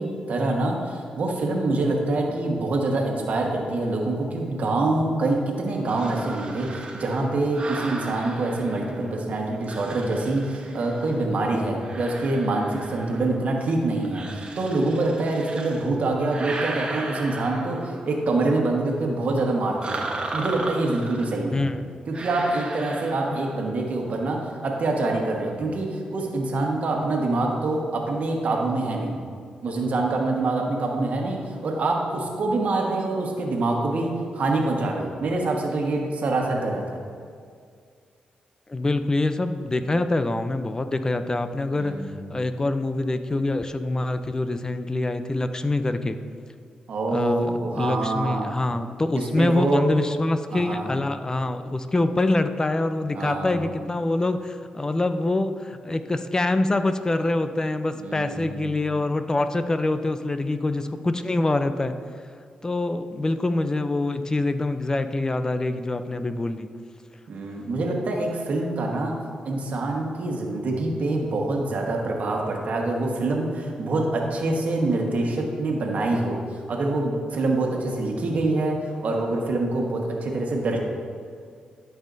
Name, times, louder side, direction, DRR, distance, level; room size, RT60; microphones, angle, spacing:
voice 1, 0.0-20.0 20.3-21.7 22.1-29.2 29.6-37.0 41.7-42.2 46.9-48.5 49.1-49.8 50.5-50.9 53.1-53.6 57.9-58.7 67.3-69.2 69.4-80.8, right 2 dB, 60° right, 0 dB, 1.3 m, -25 dB
sound 1, 5.8-9.2 9.6-11.2 11.7-13.4 14.0-15.9 16.2-18.1 19.8-21.4 22.1-23.7, right 2 dB, 40° right, 1.1 m, -36 dB
voice 2, 21.5-21.8 38.7-46.2 47.1-61.9 62.6-66.7, left 2 dB, 25° left, 10 dB, 0.5 m, -25 dB
12.0 x 5.5 x 2.6 m, 2.2 s
cardioid pair, 65°, 3 cm